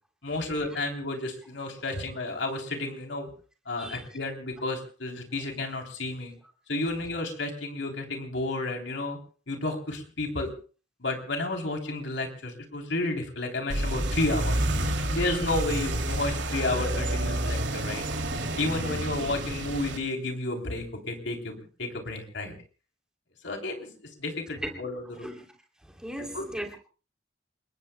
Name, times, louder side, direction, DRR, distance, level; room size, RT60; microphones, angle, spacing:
voice 1, 0.2-3.3 3.6-6.3 6.7-9.2 9.5-10.5 11.0-18.0 18.6-22.5 23.4-23.9 24.2-25.3 26.2-26.5, left 2 dB, 85° left, 2 dB, 3.4 m, -31 dB
sound 1, 13.7-20.0, right 1 dB, 85° right, 2.8 m, -29 dB
voice 2, 26.0-26.8, equal, 5° right, 2 dB, 3.0 m, -37 dB
28.5 x 21.5 x 2.2 m, 0.38 s
head